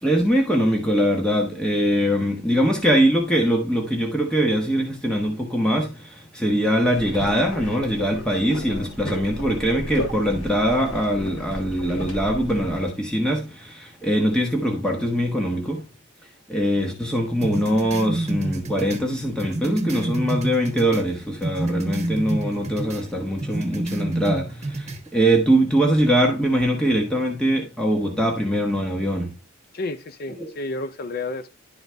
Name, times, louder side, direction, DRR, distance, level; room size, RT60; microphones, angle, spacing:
voice 1, 0.0-15.9 16.2-29.3 30.3-30.5, equal, 5° left, 1.1 m, -22 dB
sound 1, 6.9-12.9, equal, 85° left, 3.3 m, -34 dB
sound 2, 17.4-21.1 21.4-23.1 23.4-25.0, right 1 dB, 35° right, 1.3 m, -28 dB
voice 2, 29.7-31.5, left 2 dB, 45° left, 0.5 m, -31 dB
11.5 x 4.0 x 3.4 m
head